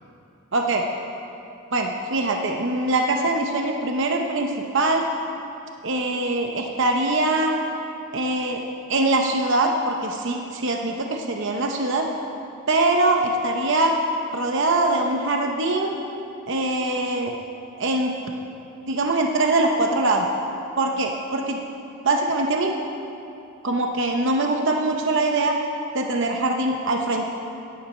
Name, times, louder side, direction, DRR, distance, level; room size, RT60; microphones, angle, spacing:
voice 1, 1.7-5.1 5.8-7.5 8.1-8.6 8.9-12.1 12.7-14.0 14.3-16.0 16.5-17.3 17.8-18.2 18.9-20.3 20.8-21.6 22.0-22.7 23.6-25.6 25.9-27.3, right 2 dB, 60° right, 2 dB, 0.8 m, -22 dB
17.5 x 9.3 x 4.4 m, 2.7 s
head